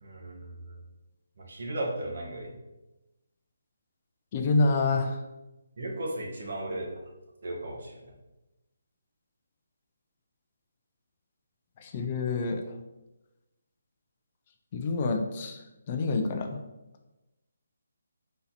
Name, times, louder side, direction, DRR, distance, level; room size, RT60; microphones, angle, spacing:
voice 1, 0.0-0.7 1.4-2.5 5.8-7.0 7.4-8.1, right 1 dB, 50° right, 0 dB, 1.0 m, -36 dB
voice 2, 4.3-5.2 11.8-12.6 14.7-15.6 15.9-16.6, left 3 dB, 25° left, 5 dB, 0.4 m, -27 dB
4.1 x 2.7 x 4.1 m, 1.0 s
hypercardioid pair, 175°, 0 cm